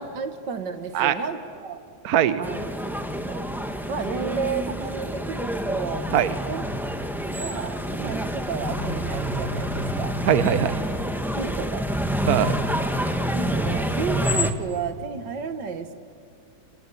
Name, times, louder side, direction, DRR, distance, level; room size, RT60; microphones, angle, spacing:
voice 1, 0.0-1.8 2.4-2.7 3.3-3.4 3.9-6.1 6.5-6.7 6.9-10.2 11.4-11.8 13.3-15.9, right 5 dB, 90° right, 8 dB, 2.1 m, -32 dB
voice 2, 2.0-2.4 6.1-6.3 8.0-8.2 10.3-10.8 12.3-12.6, right 10 dB, 65° right, 11 dB, 1.4 m, -21 dB
sound 1, 2.4-14.5, equal, ahead, 1.2 m, -28 dB
sound 2, 8.4-11.2, left 2 dB, 80° left, 3.3 m, -34 dB
25.5 x 25.0 x 8.6 m, 2.5 s
omnidirectional pair, 1.8 m